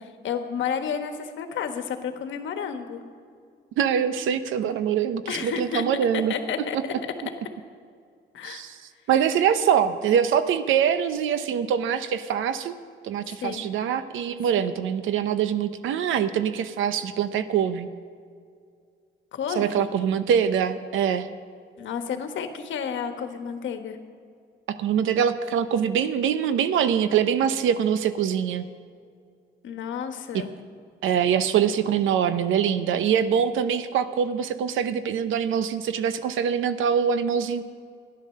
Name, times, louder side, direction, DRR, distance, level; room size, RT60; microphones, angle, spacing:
voice 1, 0.0-3.0 5.3-5.8 6.1-6.8 8.3-8.7 13.4-13.6 14.6-14.7 19.3-19.9 21.8-24.0 29.6-30.5, left 7 dB, 70° left, 7 dB, 1.3 m, -31 dB
voice 2, 3.8-6.3 8.4-8.7 9.1-12.7 13.0-17.9 19.6-21.3 24.8-28.6 30.3-30.4 31.0-37.6, right 8 dB, 80° right, 12 dB, 0.8 m, -24 dB
13.0 x 10.5 x 6.5 m, 2.3 s
cardioid pair, 90°, 20 cm